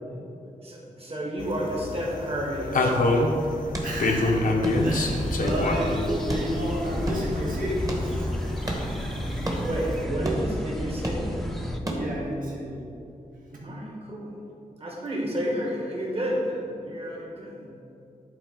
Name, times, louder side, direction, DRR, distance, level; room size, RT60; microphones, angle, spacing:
voice 1, 0.6-3.4 9.5-11.4 13.6-14.4 14.8-17.7, equal, 40° right, -3 dB, 1.8 m, -31 dB
sound 1, 1.4-10.0, left 2 dB, 70° left, 0.8 m, -28 dB
sound 2, 3.3-12.3, right 1 dB, 25° right, 1.2 m, -34 dB
voice 2, 3.8-4.5 4.8-8.5 11.9-12.8 13.5-13.7, equal, 70° right, -5 dB, 1.8 m, -31 dB
sound 3, 4.6-11.8, equal, ahead, 0.7 m, -32 dB
10.5 x 4.0 x 4.6 m, 2.7 s
wide cardioid pair, 85°, 15 cm